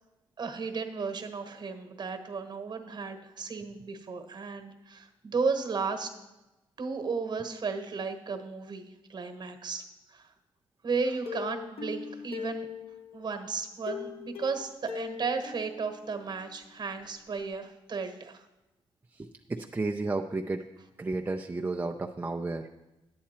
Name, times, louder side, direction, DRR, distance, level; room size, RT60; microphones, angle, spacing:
voice 1, 0.4-6.1 6.8-8.8 9.1-10.3 10.8-12.7 13.1-18.4, right 4 dB, 45° right, 6 dB, 1.2 m, -34 dB
Plucked string instrument, 11.3-13.2 13.9-16.7 17.0-17.1 17.4-17.5, left 8 dB, 65° left, 1.1 m, -40 dB
voice 2, 19.1-20.6 21.0-22.7, right 3 dB, 15° right, 2 dB, 0.5 m, -32 dB
10.0 x 8.6 x 4.3 m, 1.0 s
cardioid pair, 85°, 11 cm